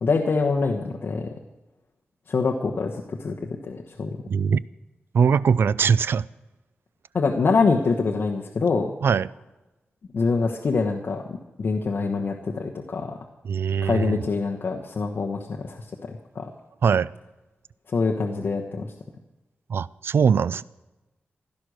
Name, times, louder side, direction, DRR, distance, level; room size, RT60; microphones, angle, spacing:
voice 1, 0.0-1.3 2.3-4.2 7.1-8.9 10.1-13.2 13.8-16.5 17.9-18.9, left 4 dB, 55° left, 0 dB, 1.2 m, -25 dB
voice 2, 4.3-4.6 5.1-6.3 9.0-9.3 13.4-14.2 16.8-17.1 19.7-20.6, right 6 dB, 70° right, 20 dB, 0.4 m, -21 dB
16.0 x 12.0 x 6.5 m, 1.1 s
wide cardioid pair, 150°, 4 cm